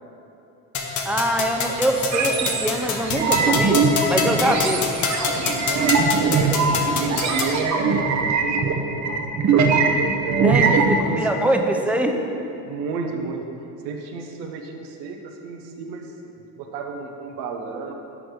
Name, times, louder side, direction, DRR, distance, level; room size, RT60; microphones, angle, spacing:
sound 1, 0.7-7.6, left 5 dB, 45° left, 0.9 m, -26 dB
voice 1, 1.1-5.0 6.7-6.8 10.4-12.1, right 1 dB, 5° right, 3 dB, 0.4 m, -23 dB
sound 2, 2.1-11.0, right 4 dB, 40° right, 0.7 m, -21 dB
voice 2, 5.6-9.2 9.5-9.8 10.2-11.5 12.1-12.2 12.7-13.5 13.8-16.1 16.6-17.9, right 4 dB, 85° right, 4 dB, 0.8 m, -32 dB
6.1 x 4.9 x 4.9 m, 2.9 s
supercardioid pair, 85°, 43 cm